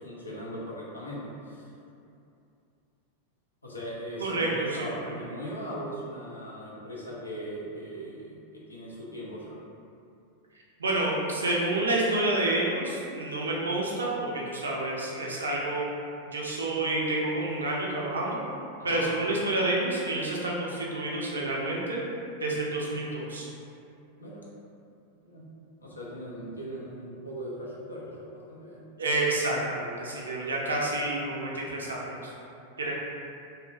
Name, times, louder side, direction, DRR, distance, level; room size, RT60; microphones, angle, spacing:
voice 1, 0.0-1.7 3.6-9.6 18.8-19.1 24.2-24.4 25.2-25.5 25.8-28.9, equal, 80° left, -5 dB, 0.5 m, -39 dB
voice 2, 4.2-5.1 10.8-15.8 16.3-18.4 18.8-22.0 22.4-23.5 29.0-32.3 32.8-32.9, right 2 dB, 70° right, -3 dB, 0.4 m, -29 dB
2.6 x 2.1 x 2.5 m, 2.6 s
figure-of-eight pair, 90°, 0 cm